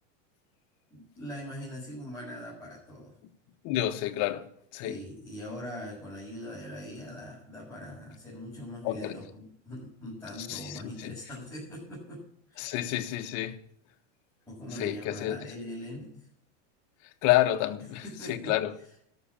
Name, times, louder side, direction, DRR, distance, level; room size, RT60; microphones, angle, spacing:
voice 1, 0.9-3.1 4.8-12.8 14.5-16.3 18.0-18.6, left 1 dB, 5° left, 6.4 m, -41 dB
voice 2, 3.6-4.4 4.7-5.0 8.8-9.2 10.4-11.2 12.6-13.6 14.8-15.4 17.2-18.7, left 14 dB, 50° left, 1.4 m, -29 dB
13.0 x 6.6 x 8.5 m
supercardioid pair, 135°, 38 cm